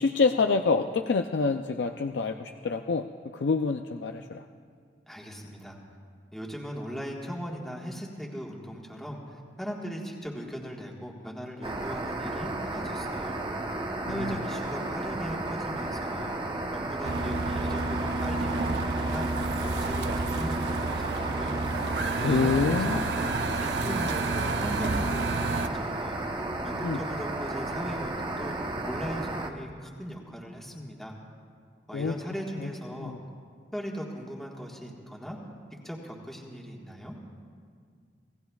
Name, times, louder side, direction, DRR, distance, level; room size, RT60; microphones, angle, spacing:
voice 1, 0.0-4.4 14.1-14.4 22.2-23.0 26.8-27.0 31.9-32.2 32.6-33.2, left 4 dB, 80° left, 5 dB, 0.5 m, -27 dB
voice 2, 5.1-5.8 6.3-13.4 14.1-21.6 22.2-23.0 23.6-26.2 26.6-31.1 31.9-33.1 33.7-35.4 35.8-37.2, equal, ahead, -2 dB, 1.5 m, -38 dB
sound 1, 11.6-29.5, right 2 dB, 30° right, 0.9 m, -33 dB
sound 2, 17.0-25.7, right 3 dB, 75° right, 0.6 m, -30 dB
26.0 x 17.5 x 2.4 m, 2.1 s
head